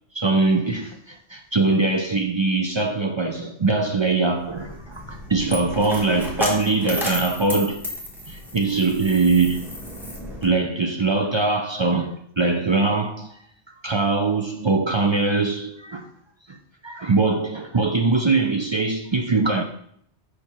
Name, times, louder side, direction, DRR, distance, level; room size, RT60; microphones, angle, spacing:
voice 1, 0.1-7.8 8.3-9.6 10.4-13.4 13.8-16.1 16.5-16.6 16.8-19.6, right 3 dB, 50° right, 0.3 m, -22 dB
Coin (dropping), 4.4-10.5, equal, ahead, 1.1 m, -33 dB
4.8 x 4.4 x 5.6 m
omnidirectional pair, 1.2 m